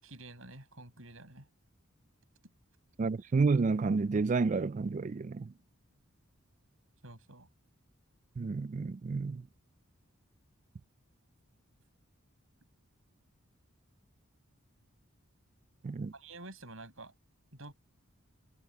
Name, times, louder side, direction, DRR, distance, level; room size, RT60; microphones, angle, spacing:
voice 1, 0.0-1.5 7.0-7.5 16.1-17.1 17.5-17.7, right 2 dB, 70° right, 6.6 m, -49 dB
voice 2, 3.0-5.5 8.4-9.4 15.8-16.1, right 4 dB, 35° right, 0.3 m, -30 dB
head